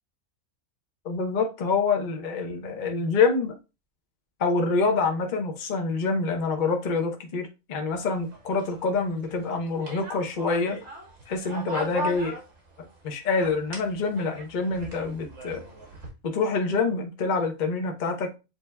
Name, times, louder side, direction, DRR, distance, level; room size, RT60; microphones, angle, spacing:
voice 1, 1.0-3.5 4.4-10.8 11.3-12.4 13.0-15.6 16.2-18.4, left 4 dB, 40° left, 0.8 m, -26 dB
sound 1, 7.9-13.0 13.3-16.1, right 2 dB, 60° right, 1.7 m, -38 dB
8.0 x 2.8 x 2.2 m
omnidirectional pair, 1.5 m